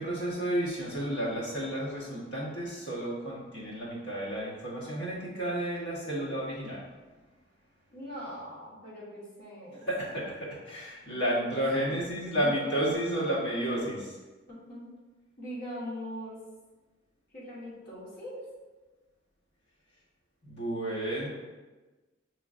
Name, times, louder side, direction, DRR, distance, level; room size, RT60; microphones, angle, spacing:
voice 1, 0.0-6.8 9.8-14.2 20.4-21.3, right 1 dB, 65° left, -6 dB, 1.2 m, -32 dB
voice 2, 7.9-9.9 11.2-11.5 12.4-12.5 14.5-14.9 15.4-16.4 17.3-18.4, equal, 50° left, -7 dB, 1.3 m, -41 dB
5.0 x 3.1 x 2.4 m, 1.2 s
head